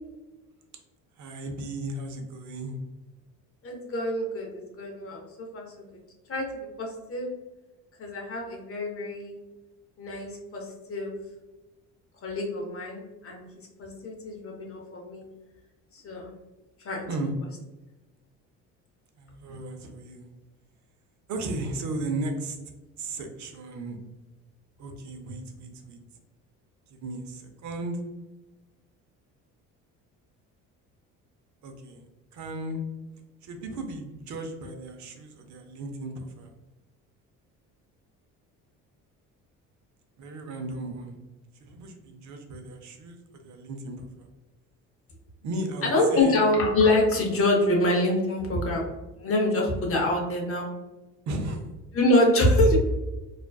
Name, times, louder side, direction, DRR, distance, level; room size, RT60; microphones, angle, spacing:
voice 1, 1.2-2.8 17.1-17.3 19.2-20.3 21.3-22.6 23.0-24.0 24.8-26.0 26.9-28.0 31.6-32.1 32.3-32.8 33.4-36.5 40.2-41.2 41.5-44.3 45.4-46.3 51.3-51.7, right 2 dB, 55° right, 4 dB, 0.6 m, -35 dB
voice 2, 3.6-5.2 5.5-5.8 6.3-7.3 8.0-9.3 10.0-11.1 12.2-13.4 13.8-15.2 15.9-16.3 16.8-17.1 45.9-50.7 51.9-52.8, left 1 dB, 40° left, 0 dB, 0.7 m, -25 dB
2.4 x 2.2 x 2.2 m, 1.1 s
supercardioid pair, 75°, 36 cm